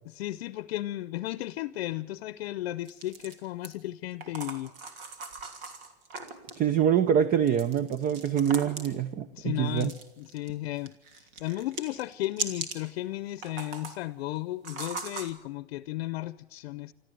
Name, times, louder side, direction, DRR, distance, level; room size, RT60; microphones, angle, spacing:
voice 1, 0.1-4.7 9.3-10.9 11.4-16.9, left 16 dB, 75° left, 16 dB, 0.7 m, -34 dB
sound 1, 2.8-3.7 4.2-6.6 7.5-9.0 9.8-10.5 10.8-12.9 13.3-14.0 14.6-15.3, right 4 dB, 65° right, 2.9 m, -39 dB
voice 2, 6.6-9.9, right 9 dB, 30° right, 14 dB, 0.8 m, -25 dB
26.0 x 13.5 x 7.8 m, 1.0 s
supercardioid pair, 130°, 31 cm